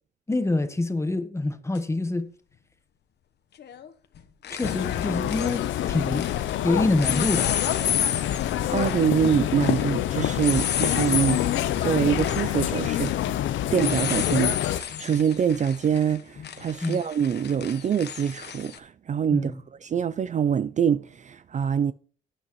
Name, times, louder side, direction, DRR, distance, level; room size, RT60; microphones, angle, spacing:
voice 1, 0.3-2.3 4.5-6.3 6.6-7.6 16.8-17.0 19.3-19.6, left 2 dB, 15° left, 1.2 m, -26 dB
sound 1, 1.7-1.8 3.6-3.9 4.1-6.6 7.0-18.8, left 9 dB, 60° left, 1.0 m, -32 dB
sound 2, 4.6-14.8, left 12 dB, 75° left, 0.6 m, -27 dB
voice 2, 8.7-11.4 11.8-13.2 13.7-19.5 19.8-21.9, right 8 dB, 40° right, 0.4 m, -25 dB
14.5 x 9.6 x 3.1 m
cardioid pair, 90°, 20 cm